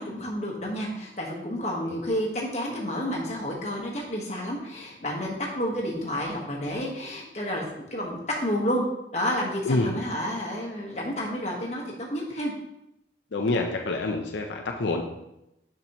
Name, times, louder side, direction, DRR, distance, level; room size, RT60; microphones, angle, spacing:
voice 1, 0.0-8.8 9.1-12.5, equal, 40° left, -1 dB, 1.3 m, -30 dB
voice 2, 9.6-10.0 13.3-15.0, left 2 dB, 85° left, 2 dB, 0.6 m, -27 dB
6.9 x 5.9 x 3.0 m, 0.87 s
head